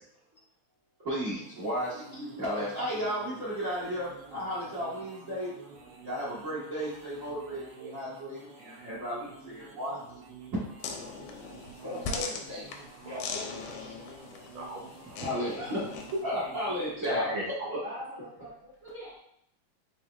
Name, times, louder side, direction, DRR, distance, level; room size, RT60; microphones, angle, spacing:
voice 1, 1.0-5.5 6.0-10.0 10.9-11.1 15.2-17.3 17.7-17.8 18.8-19.2, equal, 45° right, -10 dB, 1.1 m, -34 dB
sound 1, 1.2-17.1, right 4 dB, 90° right, 1.2 m, -51 dB
sound 2, 10.8-16.2, left 5 dB, 80° left, 1.6 m, -40 dB
voice 2, 11.8-14.0 15.2-15.5 17.8-18.7, left 1 dB, 25° left, -10 dB, 1.4 m, -41 dB
voice 3, 14.5-15.3 16.7-17.7, equal, 75° right, -2 dB, 1.8 m, -36 dB
4.4 x 4.2 x 2.3 m, 0.71 s
omnidirectional pair, 3.3 m